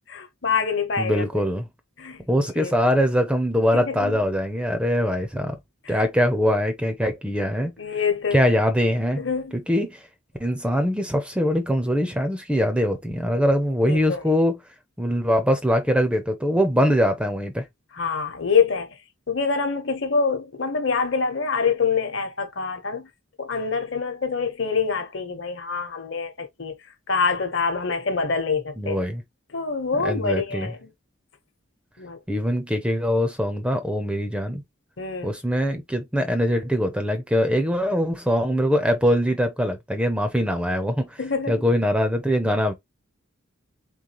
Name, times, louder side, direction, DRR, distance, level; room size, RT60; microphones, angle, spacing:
voice 1, 0.1-1.4 2.0-2.2 2.6-2.7 3.7-4.2 5.8-6.0 6.4-6.5 7.8-8.6 9.2-9.6 13.8-14.2 17.9-19.0 19.3-23.1 23.4-26.7 27.1-29.0 29.5-30.9 32.0-32.2 35.0-35.3 41.2-41.5, left 5 dB, 60° left, 1.0 m, -25 dB
voice 2, 1.0-1.7 2.3-5.6 5.9-7.7 8.3-9.2 9.7-10.0 10.4-14.6 15.0-17.6 28.8-29.2 30.0-30.7 32.3-34.6 35.2-41.2 41.5-42.7, equal, 5° right, 0.5 m, -22 dB
3.8 x 3.6 x 3.0 m
head